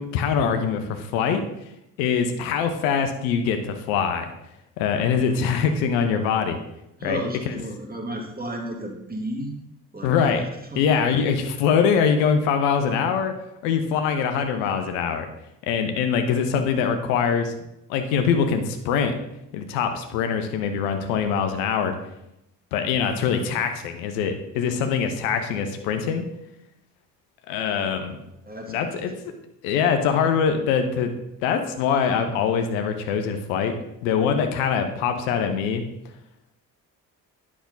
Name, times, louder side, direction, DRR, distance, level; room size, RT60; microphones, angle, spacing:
voice 1, 0.0-1.4 2.0-4.3 4.8-6.6 7.0-7.6 10.0-10.4 10.7-13.3 13.6-15.3 15.7-17.5 17.9-19.1 19.5-21.9 22.7-26.3 27.5-28.1 28.7-29.1 29.6-31.1 31.4-33.7 34.0-35.8, left 6 dB, 65° left, 6 dB, 1.0 m, -23 dB
voice 2, 7.0-9.6 9.9-10.4 10.7-10.8 28.5-28.9, right 1 dB, 20° right, 1 dB, 2.2 m, -33 dB
10.0 x 6.1 x 3.9 m, 0.84 s
figure-of-eight pair, 40°, 48 cm